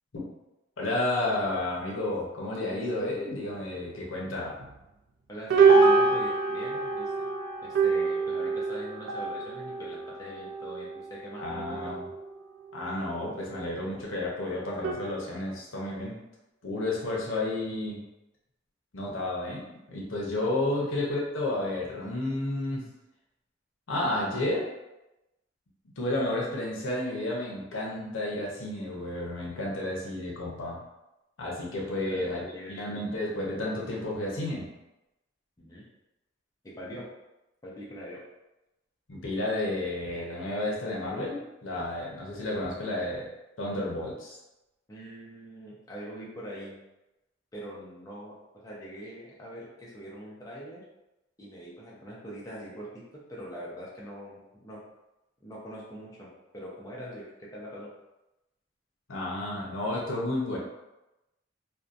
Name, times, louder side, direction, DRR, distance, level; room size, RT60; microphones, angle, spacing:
voice 1, 0.8-4.5 11.4-12.0 12.7-16.1 16.6-18.0 18.9-22.9 23.9-24.7 26.0-30.8 31.4-34.7 39.1-43.3 43.6-44.4 59.1-60.6, left 1 dB, 75° left, -3 dB, 0.7 m, -31 dB
sound 1, 4.6-4.7 5.5-12.4 12.7-13.1 13.6-13.7 14.8-14.9, right 4 dB, 65° right, 0.4 m, -25 dB
voice 2, 5.3-7.3 7.6-11.9 32.0-32.8 35.6-35.8 36.6-37.1 37.6-38.2 44.9-46.8 47.5-48.3 48.6-50.8 51.4-54.8 55.4-57.9, equal, 20° left, -5 dB, 0.5 m, -43 dB
2.6 x 2.2 x 2.4 m, 0.97 s
head